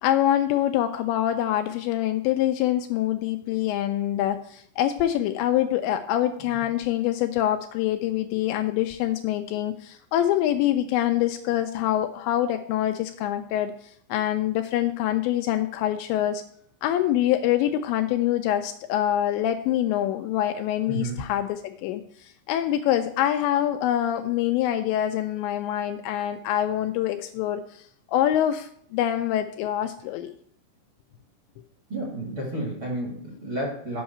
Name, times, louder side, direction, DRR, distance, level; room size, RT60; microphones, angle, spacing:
voice 1, 0.0-13.7 14.1-16.4 16.8-30.3, left 12 dB, 85° left, 7 dB, 2.7 m, -25 dB
voice 2, 20.9-21.2 31.9-34.0, right 1 dB, 45° right, -1 dB, 1.7 m, -31 dB
9.7 x 5.5 x 5.6 m, 0.64 s
omnidirectional pair, 5.5 m